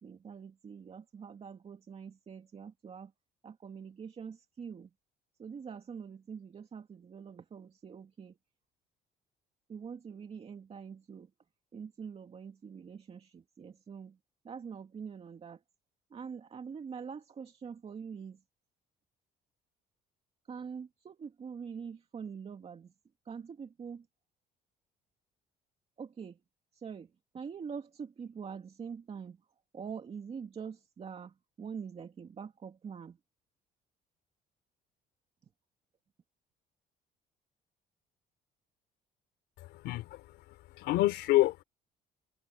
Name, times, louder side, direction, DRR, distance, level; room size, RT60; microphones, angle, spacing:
voice 1, 0.0-3.1 3.4-4.9 5.4-8.4 9.7-11.3 11.7-14.2 14.4-15.6 16.1-18.4 20.5-22.9 23.3-24.1 26.0-26.4 26.7-29.4 29.7-33.2, right 6 dB, 35° right, 2.3 m, -44 dB
voice 2, 39.6-41.6, left 16 dB, 85° left, 3.3 m, -29 dB
open air
cardioid pair, 110°, 17 cm